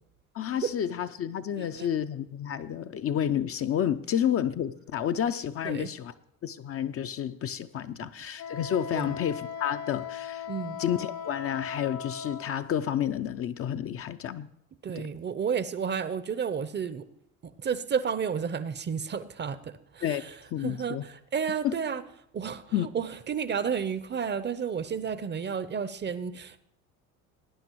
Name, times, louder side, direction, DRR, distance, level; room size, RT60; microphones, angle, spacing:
voice 1, 0.3-6.1 6.4-10.5 10.8-14.5 15.0-15.1 20.0-20.2 20.5-21.0 21.6-21.8 22.7-22.9, left 10 dB, 35° left, 0.5 m, -30 dB
voice 2, 1.6-1.9 5.6-5.9 8.9-9.1 10.5-10.8 14.8-17.0 17.6-20.3 20.6-22.0 22.3-26.6, right 7 dB, 25° right, 0.6 m, -31 dB
Wind instrument woodwind instrument, 8.4-12.5, left 7 dB, 60° left, 1.3 m, -38 dB
18.5 x 10.0 x 3.0 m
hypercardioid pair, 65°, 41 cm